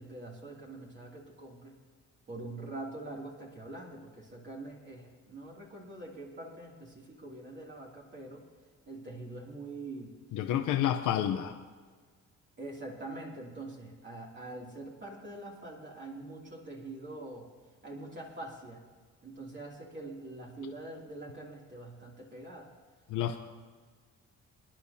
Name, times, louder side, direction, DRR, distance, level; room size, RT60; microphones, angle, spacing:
voice 1, 0.0-1.7 2.3-8.4 8.9-10.1 12.6-17.5 17.8-18.8 19.2-22.7 23.3-23.4, right 2 dB, 40° right, -3 dB, 2.7 m, -44 dB
voice 2, 10.3-11.6 23.1-23.4, left 11 dB, 85° left, 4 dB, 0.8 m, -29 dB
27.0 x 10.5 x 2.8 m, 1.5 s
cardioid pair, 90°, 30 cm